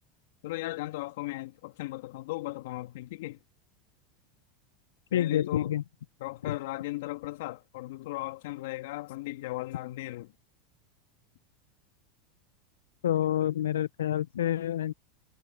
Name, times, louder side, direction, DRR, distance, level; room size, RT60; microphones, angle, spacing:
voice 1, 0.4-3.4 5.1-5.7 6.2-10.3, left 18 dB, 70° left, 1.9 m, -37 dB
voice 2, 5.1-5.8 6.4-6.5 13.0-14.9, left 11 dB, 85° left, 0.4 m, -28 dB
hypercardioid pair, 105°, 0 cm